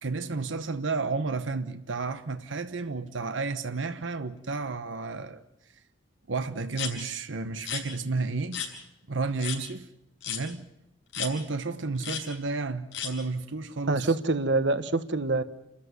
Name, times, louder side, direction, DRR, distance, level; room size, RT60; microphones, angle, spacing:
voice 1, 0.0-5.4 6.3-8.7 9.1-9.9 10.3-10.7 11.2-14.1, right 3 dB, 90° right, 1.1 m, -32 dB
sound 1, 6.7-6.9 7.6-7.8 8.5-8.7 9.4-9.6 10.2-10.4 11.1-11.3 12.0-12.2 12.9-13.1, left 8 dB, 80° left, 6.4 m, -33 dB
voice 2, 13.9-15.4, right 3 dB, 70° right, 1.3 m, -25 dB
29.5 x 14.0 x 9.6 m
head